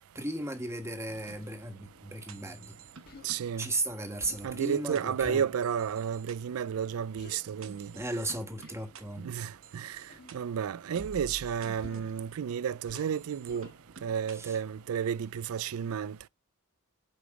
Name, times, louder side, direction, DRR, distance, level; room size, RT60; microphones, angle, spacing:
voice 1, 0.1-2.8 3.6-5.4 7.9-9.3 14.3-14.6, right 2 dB, 15° right, 1.3 m, -35 dB
sound 1, 1.1-14.9, right 4 dB, 65° right, 0.9 m, -52 dB
Human voice, 3.1-3.3 4.2-4.6 5.2-5.5 7.2-7.4 8.6-8.9 10.1-10.4 11.8-12.2 12.8-13.2 13.5-13.8, left 1 dB, 45° left, 1.4 m, -49 dB
voice 2, 3.2-3.7 4.4-7.9 9.2-10.0 10.3-13.7 14.0-16.2, right 7 dB, 85° right, 0.4 m, -32 dB
8.7 x 5.2 x 4.7 m
head